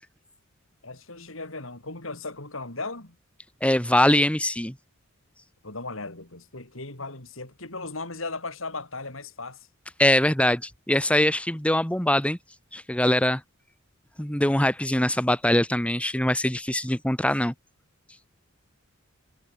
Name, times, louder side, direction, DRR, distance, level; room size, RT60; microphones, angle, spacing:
voice 1, 0.8-3.2 5.6-9.7, left 3 dB, 65° left, 5.2 m, -37 dB
voice 2, 3.6-4.7 10.0-12.4 12.7-13.4 14.2-17.5, left 1 dB, 5° left, 1.7 m, -22 dB
head